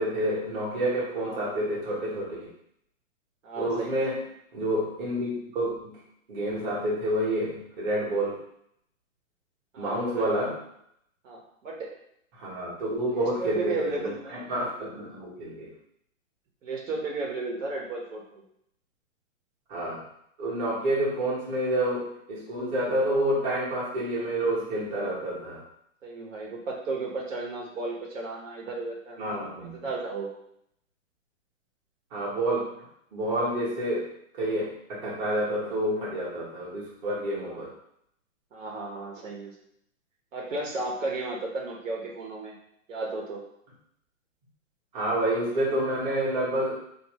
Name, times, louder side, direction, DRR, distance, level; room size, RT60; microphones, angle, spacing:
voice 1, 0.0-2.5 3.6-4.2 4.5-6.0 6.3-8.4 9.8-10.6 12.3-15.7 19.7-20.0 20.4-25.6 29.2-29.9 32.1-32.7 33.1-34.1 34.3-37.7 44.9-46.8, right 1 dB, 30° right, -6 dB, 1.3 m, -28 dB
voice 2, 1.1-1.4 3.4-4.0 9.7-10.6 11.2-11.9 13.1-14.4 16.6-18.4 26.0-29.4 29.8-30.3 37.4-37.6 38.5-39.5 40.3-42.5 42.9-43.4, right 3 dB, 65° right, -2 dB, 1.4 m, -34 dB
4.3 x 3.0 x 3.1 m, 0.72 s
hypercardioid pair, 160°, 41 cm